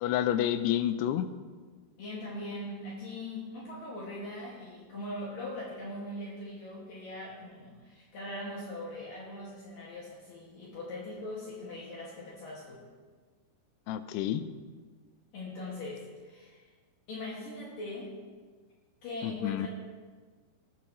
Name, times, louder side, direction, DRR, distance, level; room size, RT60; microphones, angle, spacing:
voice 1, 0.0-1.3 13.9-14.4 19.2-19.7, left 11 dB, 85° left, 11 dB, 2.6 m, -29 dB
voice 2, 2.0-12.8 15.3-16.7 17.1-18.2 19.0-19.7, left 1 dB, 60° left, -5 dB, 3.4 m, -41 dB
20.5 x 12.0 x 3.1 m, 1.5 s
omnidirectional pair, 4.9 m